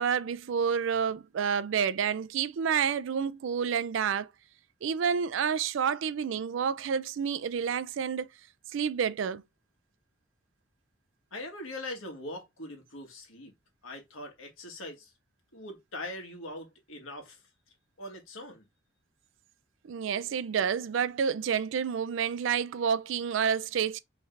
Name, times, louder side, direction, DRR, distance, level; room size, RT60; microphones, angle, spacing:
voice 1, 0.0-4.3 4.8-8.3 8.7-9.4 19.8-24.0, right 7 dB, 65° right, 0.4 m, -29 dB
voice 2, 11.3-13.5 13.8-15.1 15.5-17.4 18.0-18.6, left 1 dB, 85° left, 1.6 m, -41 dB
5.0 x 3.2 x 2.5 m
head